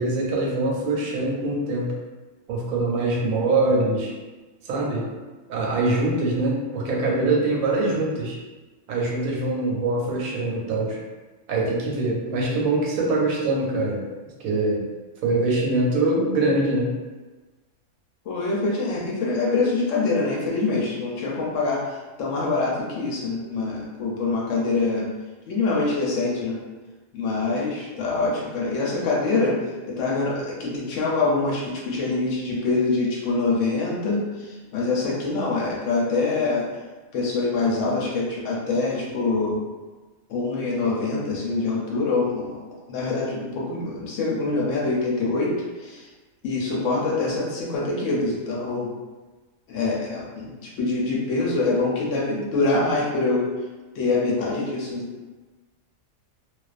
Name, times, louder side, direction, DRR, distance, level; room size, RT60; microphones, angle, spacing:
voice 1, 0.0-1.9 2.5-4.1 4.6-5.1 5.5-8.4 8.9-11.0 11.5-14.0 14.4-14.8 15.2-16.9, right 2 dB, 90° right, -1 dB, 1.0 m, -23 dB
voice 2, 18.3-25.1 25.5-26.6 27.1-36.6 37.1-39.6 40.3-42.6 42.9-45.5 45.8-46.1 46.4-48.9 49.7-53.5 53.9-55.1, left 3 dB, 70° left, -4 dB, 0.9 m, -25 dB
2.4 x 2.2 x 2.3 m, 1.2 s
omnidirectional pair, 1.4 m